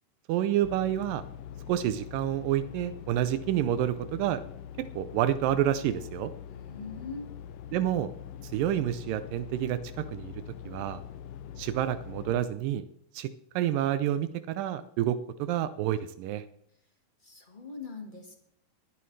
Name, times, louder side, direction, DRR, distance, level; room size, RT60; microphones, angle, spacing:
voice 1, 0.3-1.2 1.7-4.4 5.0-6.3 7.7-8.1 8.5-10.3 10.7-11.0 11.6-12.8 13.1-13.3 13.6-16.4, right 11 dB, 85° right, 12 dB, 2.4 m, -28 dB
sound 1, 0.6-12.4, left 9 dB, 85° left, 2.4 m, -43 dB
voice 2, 6.5-7.3 17.2-18.3, left 4 dB, 25° left, 2 dB, 1.0 m, -42 dB
21.0 x 11.0 x 3.3 m, 0.70 s
omnidirectional pair, 3.8 m